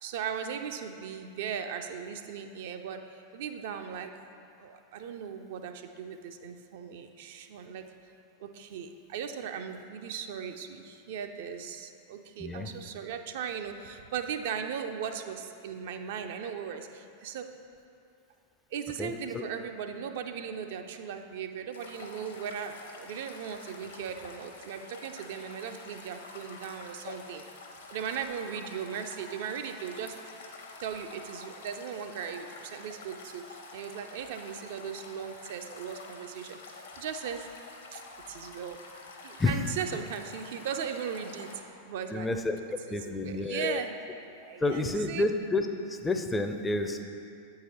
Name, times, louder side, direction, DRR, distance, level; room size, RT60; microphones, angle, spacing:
voice 1, 0.0-4.1 4.6-7.9 8.4-17.5 18.7-27.4 27.9-30.1 30.8-37.5 37.9-38.0 38.3-38.8 39.2-42.3 42.9-43.9 44.4-45.3, right 7 dB, 55° right, 6 dB, 0.4 m, -38 dB
voice 2, 19.0-19.5 39.4-39.6 42.1-42.6 42.9-43.8 44.6-47.0, left 2 dB, 10° left, 6 dB, 0.4 m, -30 dB
sound 1, 21.7-41.6, left 3 dB, 65° left, 0.9 m, -48 dB
8.1 x 4.7 x 4.2 m, 2.5 s
figure-of-eight pair, 90°, 0 cm